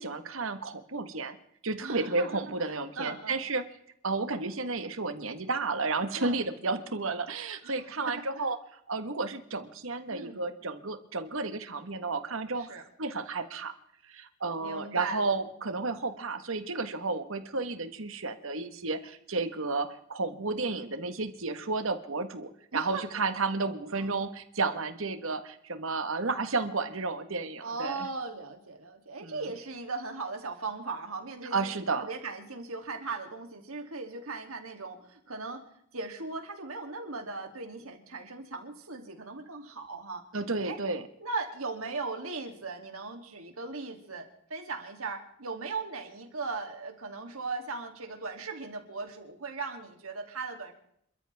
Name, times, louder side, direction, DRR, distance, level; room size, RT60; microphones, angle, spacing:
voice 1, 0.0-1.4 1.6-3.7 4.0-8.6 8.9-13.7 14.1-28.1 29.2-29.4 31.5-32.1 40.3-41.1, right 3 dB, 70° right, 9 dB, 1.5 m, -32 dB
voice 2, 1.8-3.4 6.2-6.4 7.6-7.7 8.1-8.4 10.1-10.4 12.6-12.8 14.6-15.4 22.7-23.0 23.8-24.2 27.6-35.6 35.9-40.2 40.7-40.8 41.2-50.7, right 4 dB, 85° right, 4 dB, 2.9 m, -38 dB
28.0 x 13.5 x 3.6 m, 0.70 s
head